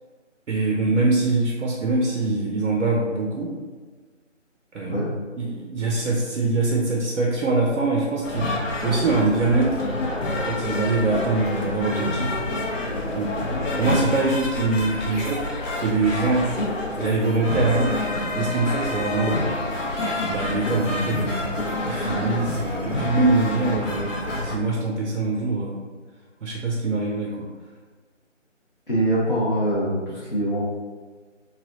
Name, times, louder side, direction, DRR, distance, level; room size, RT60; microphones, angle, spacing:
voice 1, 0.5-3.6 4.7-5.0 5.4-9.8 10.4-12.4 13.1-13.3 13.8-15.5 15.8-16.5 17.0-19.5 20.3-24.1 24.4-25.8 26.4-27.5, right 3 dB, 75° right, -2 dB, 0.5 m, -23 dB
sound 1, 8.2-24.6, left 1 dB, 80° left, 0.7 m, -28 dB
voice 2, 28.9-30.6, right 1 dB, 45° left, -9 dB, 0.6 m, -23 dB
3.2 x 2.2 x 2.5 m, 1.4 s
figure-of-eight pair, 180°, 38 cm